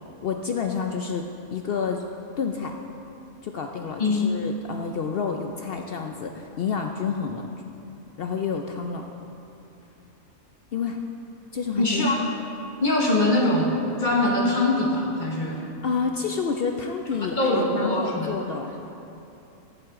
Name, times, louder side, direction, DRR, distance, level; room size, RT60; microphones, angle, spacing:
voice 1, 0.2-2.0 2.4-2.7 3.4-7.5 8.2-9.0 10.7-11.0 11.5-12.1 15.5-18.7, left 5 dB, 75° left, 4 dB, 0.5 m, -29 dB
voice 2, 11.8-12.2 12.8-15.6 17.2-18.3, left 2 dB, 35° left, -1 dB, 1.2 m, -23 dB
14.0 x 7.8 x 3.6 m, 2.9 s
omnidirectional pair, 1.5 m